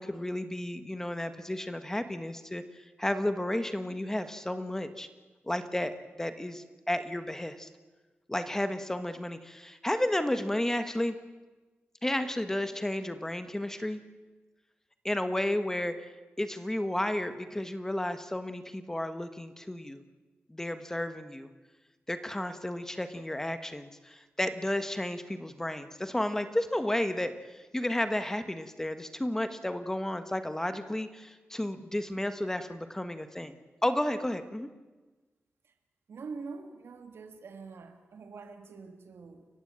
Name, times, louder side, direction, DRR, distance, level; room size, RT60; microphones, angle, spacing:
voice 1, 0.0-2.6 3.0-5.1 5.5-7.7 8.3-11.1 12.0-14.0 15.0-16.1 16.4-20.0 20.5-21.5 22.1-33.5 33.8-34.7, left 1 dB, 10° left, 10 dB, 1.4 m, -32 dB
voice 2, 36.1-39.5, right 4 dB, 85° right, 7 dB, 2.5 m, -44 dB
29.5 x 15.5 x 8.9 m, 1.2 s
wide cardioid pair, 140°, 4 cm